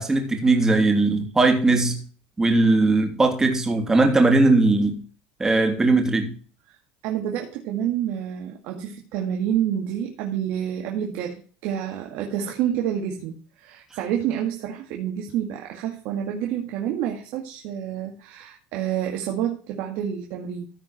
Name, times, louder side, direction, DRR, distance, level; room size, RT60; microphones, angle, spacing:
voice 1, 0.0-2.0 2.4-5.0 5.4-6.4, right 2 dB, 15° right, 2.8 m, -19 dB
voice 2, 7.0-20.7, right 10 dB, 70° right, 2.1 m, -28 dB
15.0 x 4.9 x 5.8 m
supercardioid pair, 120°, 4 cm